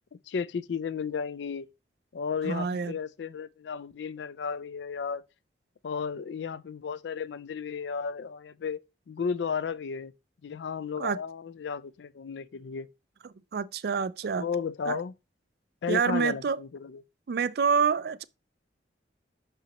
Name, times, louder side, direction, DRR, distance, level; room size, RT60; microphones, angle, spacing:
voice 1, 0.3-1.7 2.1-5.2 5.8-8.8 9.1-10.1 10.4-12.9 14.4-15.1 15.8-17.0, left 6 dB, 75° left, 0.4 m, -33 dB
voice 2, 2.4-2.9 11.0-11.2 13.5-14.4 14.9-15.0 15.9-16.6 17.3-18.2, right 6 dB, 60° right, 0.4 m, -27 dB
6.1 x 5.6 x 2.9 m
head